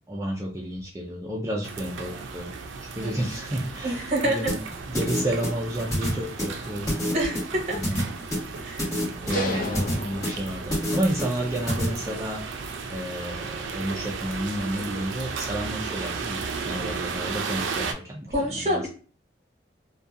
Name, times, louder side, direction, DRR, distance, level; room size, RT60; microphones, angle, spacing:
voice 1, 0.1-2.5 2.8-4.6 4.9-7.0 7.7-8.0 9.2-12.4 12.9-18.3 18.6-18.8, right 1 dB, 15° right, -1 dB, 0.3 m, -31 dB
sound 1, 1.6-17.9, right 5 dB, 90° right, 0.4 m, -35 dB
voice 2, 3.8-4.5 7.1-7.8 8.6-8.9 9.2-9.7 14.7-15.1 18.3-18.9, right 1 dB, 35° right, -2 dB, 0.9 m, -27 dB
sound 2, 4.5-11.9, equal, 20° left, 1.2 m, -28 dB
sound 3, 9.3-11.1, left 3 dB, 45° left, 0.5 m, -34 dB
2.6 x 2.2 x 2.4 m, 0.39 s
head